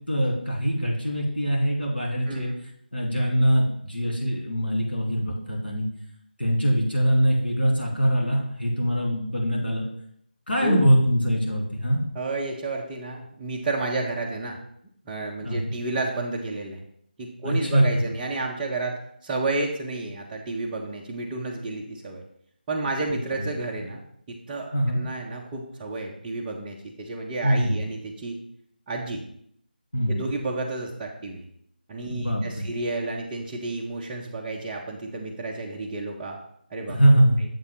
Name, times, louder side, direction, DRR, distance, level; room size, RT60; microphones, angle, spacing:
voice 1, 0.1-2.5 2.9-5.9 6.4-9.8 10.5-12.0 15.4-15.7 17.4-17.8 23.4-23.5 24.7-25.0 27.4-27.8 29.9-30.2 32.1-32.7 36.9-37.4, equal, 85° left, -3 dB, 2.9 m, -23 dB
voice 2, 12.1-14.6 15.1-16.8 17.2-22.2 22.7-24.0 24.3-28.4 28.9-29.2 30.1-31.4 31.9-36.4 36.7-37.2, right 2 dB, 10° right, -5 dB, 0.4 m, -31 dB
7.2 x 2.8 x 5.8 m, 0.68 s
figure-of-eight pair, 160°, 5 cm